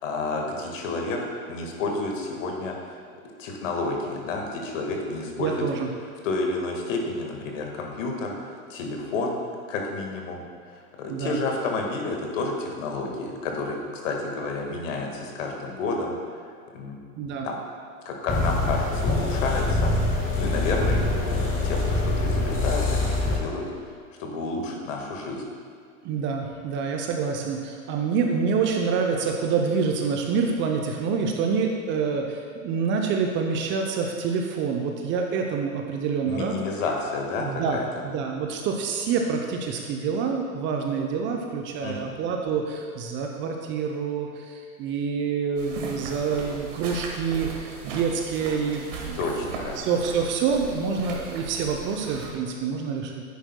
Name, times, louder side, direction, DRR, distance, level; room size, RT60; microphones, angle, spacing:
voice 1, 0.0-1.2 1.5-2.7 3.4-5.6 6.2-9.4 9.7-10.4 11.0-13.8 14.0-16.1 16.7-17.0 17.4-17.6 18.0-19.9 20.3-23.6 24.2-25.4 36.2-37.8 41.8-42.1 49.1-49.8, left 3 dB, 60° left, 1 dB, 1.7 m, -30 dB
voice 2, 5.4-5.9 11.1-11.4 17.2-17.5 26.0-36.5 37.4-37.8 38.0-49.2 49.8-53.2, right 5 dB, 25° right, 2 dB, 0.6 m, -27 dB
sound 1, 18.3-23.4, left 2 dB, 20° left, 2.1 m, -24 dB
sound 2, 45.6-52.3, right 4 dB, 60° right, 1.6 m, -37 dB
10.5 x 8.8 x 2.2 m, 2.1 s
hypercardioid pair, 105°, 43 cm